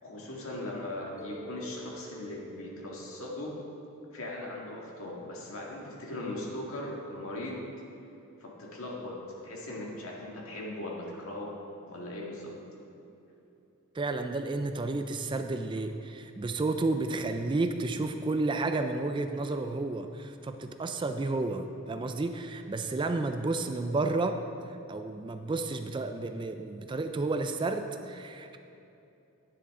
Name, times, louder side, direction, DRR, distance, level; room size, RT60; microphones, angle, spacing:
voice 1, 0.0-3.5 4.1-7.6 8.4-9.2 9.4-11.5 11.9-12.5, left 1 dB, 70° left, -3 dB, 1.9 m, -39 dB
Mallet percussion, 1.2-5.3, right 3 dB, 15° left, 0.8 m, -50 dB
voice 2, 13.9-24.4 24.9-28.6, right 3 dB, 20° right, 7 dB, 0.3 m, -31 dB
10.0 x 9.9 x 3.7 m, 2.8 s
head